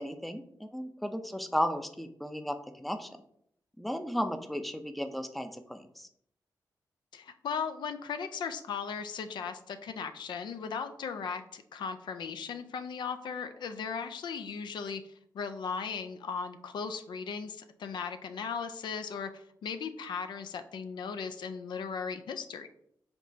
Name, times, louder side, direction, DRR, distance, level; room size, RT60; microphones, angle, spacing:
voice 1, 0.0-3.1 3.8-6.1, equal, ahead, 8 dB, 0.5 m, -34 dB
voice 2, 7.1-15.0 15.3-22.7, left 6 dB, 80° left, 8 dB, 0.4 m, -37 dB
5.2 x 2.9 x 2.7 m, 0.70 s
cardioid pair, 60°, 8 cm